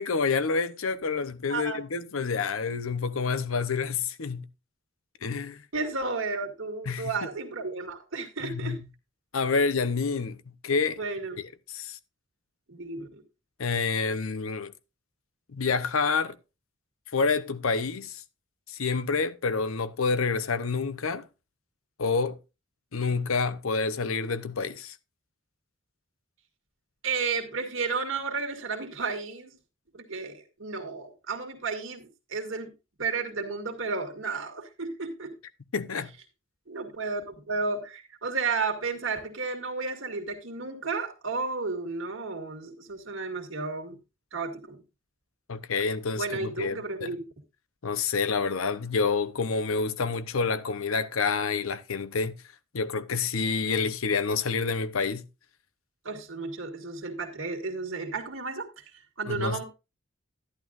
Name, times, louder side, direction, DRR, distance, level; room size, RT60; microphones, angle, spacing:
voice 1, 0.0-4.5 5.2-5.6 6.9-7.1 8.4-8.8 9.3-10.4 10.6-11.0 11.4-12.0 13.6-14.7 15.5-16.4 17.1-18.2 18.7-21.3 22.0-22.4 22.9-25.0 35.7-36.1 45.5-47.2 47.8-52.4 52.7-55.3 59.3-59.6, left 4 dB, 80° left, 0.7 m, -28 dB
voice 2, 5.7-8.8 11.0-11.4 12.7-13.2 27.0-29.5 29.9-32.7 33.0-35.3 36.7-44.0 44.3-44.8 46.1-47.2 56.0-58.8 59.2-59.6, right 4 dB, 65° right, 2.1 m, -32 dB
11.5 x 11.0 x 2.5 m
head